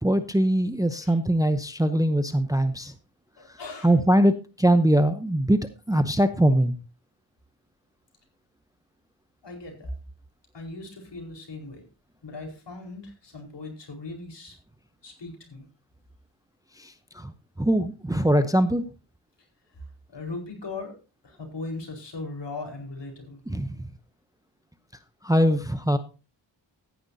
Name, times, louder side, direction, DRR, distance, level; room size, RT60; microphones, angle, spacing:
voice 1, 0.0-2.9 3.8-6.7 16.8-17.3 17.6-18.8 23.5-23.9 25.2-26.0, right 1 dB, 10° right, 10 dB, 0.8 m, -22 dB
voice 2, 3.4-4.0 9.4-10.0 10.5-11.8 12.2-14.6 15.0-15.7 19.7-20.9 21.2-23.4, left 3 dB, 65° left, 2 dB, 4.7 m, -38 dB
14.5 x 10.5 x 2.8 m, 0.31 s
wide cardioid pair, 80°, 46 cm